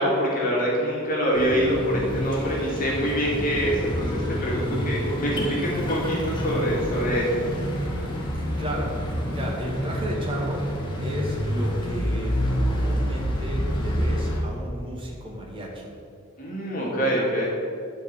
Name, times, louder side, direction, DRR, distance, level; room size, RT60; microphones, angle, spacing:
voice 1, 0.0-7.5 7.8-7.9 16.4-17.5, equal, 40° left, -5 dB, 2.4 m, -25 dB
sound 1, 1.3-14.4, equal, 20° left, 1.8 m, -28 dB
voice 2, 8.3-10.7 11.0-15.9, equal, 25° right, -3 dB, 1.8 m, -34 dB
11.5 x 5.0 x 7.7 m, 2.4 s
head